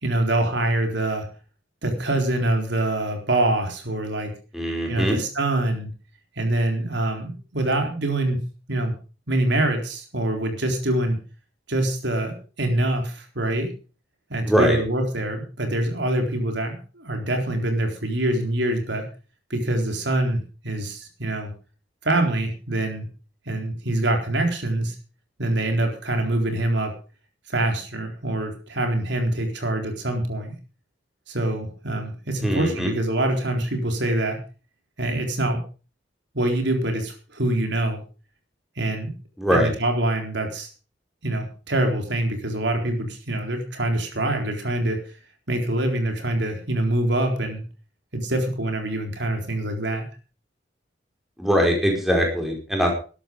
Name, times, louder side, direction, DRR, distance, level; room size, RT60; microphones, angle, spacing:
voice 1, 0.0-1.3 1.8-4.3 4.9-5.9 6.4-8.4 8.7-8.9 9.3-11.2 11.7-13.7 14.3-19.0 19.5-21.5 22.0-23.0 23.5-25.0 25.4-26.9 27.5-30.5 31.3-34.4 35.0-35.6 36.3-38.0 38.8-39.1 39.5-40.7 41.2-45.0 45.5-47.6 48.1-50.0, right 1 dB, 70° right, 4 dB, 4.1 m, -25 dB
voice 2, 4.5-5.2 14.4-14.8 32.4-32.9 39.4-39.7 51.4-52.9, equal, ahead, 0 dB, 5.0 m, -21 dB
14.0 x 12.5 x 5.3 m, 0.36 s
head